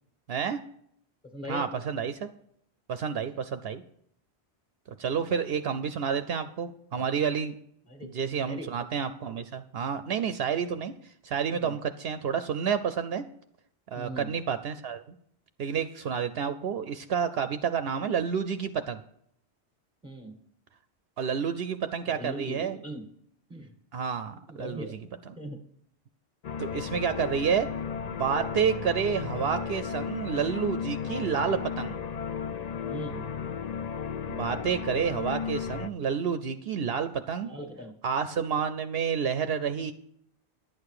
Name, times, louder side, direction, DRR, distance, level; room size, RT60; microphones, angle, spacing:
voice 1, 0.3-0.6 1.5-2.3 2.9-3.8 5.0-7.5 8.0-13.2 13.9-15.0 15.6-19.0 21.2-22.8 23.9-24.9 26.6-27.7 28.1-32.0 34.3-37.5 38.0-39.9, right 7 dB, 70° right, 10 dB, 0.8 m, -29 dB
voice 2, 1.2-1.7 3.3-3.4 5.3-5.4 7.9-8.1 8.4-8.7 11.5-11.7 13.9-14.3 20.0-20.4 22.1-23.0 23.5-23.7 24.5-25.0 25.4-25.6 32.8-33.3 37.4-38.0, equal, 5° right, 4 dB, 1.6 m, -40 dB
sound 1, 26.4-35.9, left 7 dB, 55° left, 0.5 m, -34 dB
11.0 x 8.7 x 4.8 m, 0.69 s
omnidirectional pair, 1.1 m